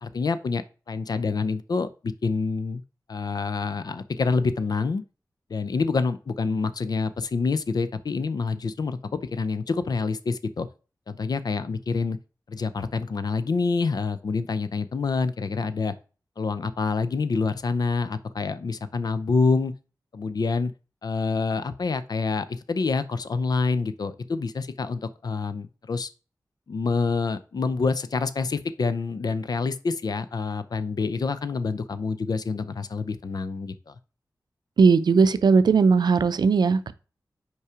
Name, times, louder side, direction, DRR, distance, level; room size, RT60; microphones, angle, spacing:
voice 1, 0.0-2.8 3.1-5.0 5.5-10.7 11.1-12.2 12.5-15.9 16.4-19.7 20.1-20.7 21.0-26.1 26.7-33.9, left 4 dB, 70° left, 0.5 m, -27 dB
voice 2, 34.8-36.9, right 5 dB, 85° right, 0.5 m, -18 dB
5.6 x 4.7 x 4.9 m
wide cardioid pair, 105°, 7 cm